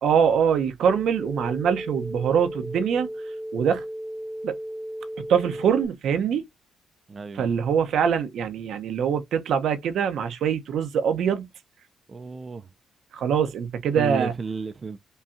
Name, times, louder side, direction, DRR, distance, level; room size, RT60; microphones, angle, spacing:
voice 1, 0.0-3.1 3.5-3.8 4.4-4.6 5.3-6.4 7.3-11.5 13.1-14.3, right 7 dB, 75° right, 0.8 m, -23 dB
sound 1, 0.9-5.9, right 1 dB, ahead, 0.8 m, -35 dB
voice 2, 7.1-7.5 12.1-12.7 14.0-15.0, right 4 dB, 35° right, 0.4 m, -33 dB
5.5 x 2.3 x 2.6 m
cardioid pair, 90°, 0 cm